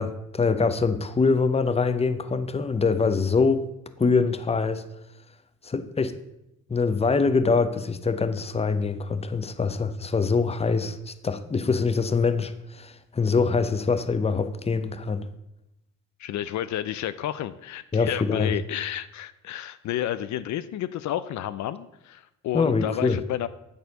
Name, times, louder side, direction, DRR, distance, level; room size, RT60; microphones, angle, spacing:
voice 1, 0.0-3.6 4.0-4.8 5.6-6.1 6.7-15.3 17.9-18.5 22.5-23.2, left 4 dB, 20° left, 11 dB, 0.7 m, -24 dB
voice 2, 16.2-23.5, left 12 dB, 70° left, 13 dB, 0.5 m, -31 dB
9.6 x 4.2 x 6.6 m, 0.86 s
cardioid pair, 90°, 30 cm